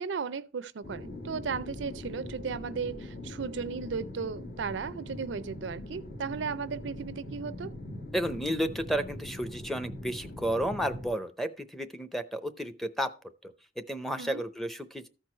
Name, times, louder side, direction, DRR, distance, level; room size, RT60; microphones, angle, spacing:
voice 1, 0.0-7.7 14.1-14.4, right 5 dB, 75° right, 0.5 m, -35 dB
sound 1, 0.8-11.1, left 1 dB, 55° left, 1.4 m, -42 dB
voice 2, 8.1-13.1 13.4-13.5 13.9-15.1, equal, ahead, 0.6 m, -32 dB
14.0 x 4.6 x 4.4 m
head